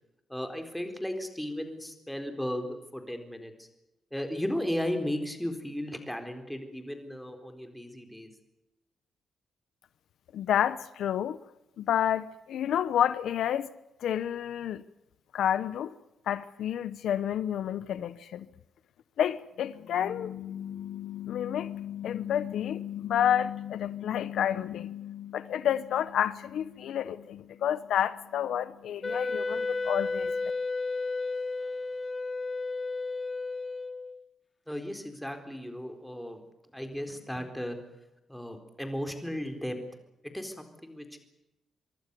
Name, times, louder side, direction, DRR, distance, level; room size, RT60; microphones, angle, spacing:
voice 1, 0.3-3.7 4.1-8.3 34.7-36.4 36.7-37.8 38.3-39.8 40.3-41.2, equal, ahead, 4.0 m, -35 dB
voice 2, 10.3-11.4 11.8-13.7 14.0-14.8 15.3-15.9 16.3-18.5 19.2-30.5, left 10 dB, 80° left, 1.0 m, -30 dB
Wind instrument woodwind instrument, 29.0-34.2, left 3 dB, 20° left, 1.2 m, -32 dB
25.0 x 23.5 x 6.9 m
cardioid pair, 140°, 0 cm